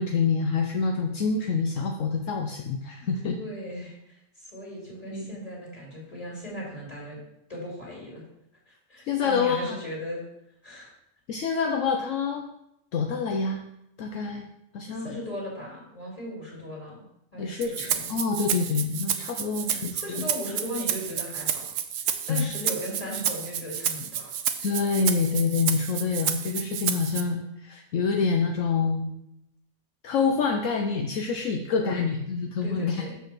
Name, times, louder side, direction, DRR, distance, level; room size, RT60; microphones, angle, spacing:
voice 1, 0.0-3.4 5.1-5.3 9.1-9.8 11.3-12.5 12.9-13.6 14.0-14.5 14.7-15.3 17.4-20.0 22.3-22.5 24.6-29.1 30.0-33.0, left 5 dB, 70° left, 3 dB, 1.1 m, -27 dB
voice 2, 3.0-7.2 7.5-8.2 8.7-10.2 10.6-10.9 14.9-17.1 17.3-18.1 19.5-21.6 22.3-24.3 31.7-32.0 32.4-33.2, equal, 25° left, -5 dB, 3.1 m, -37 dB
Rattle (instrument), 17.6-27.2, right 9 dB, 75° right, 1.0 m, -30 dB
6.7 x 5.7 x 6.0 m, 0.82 s
omnidirectional pair, 1.4 m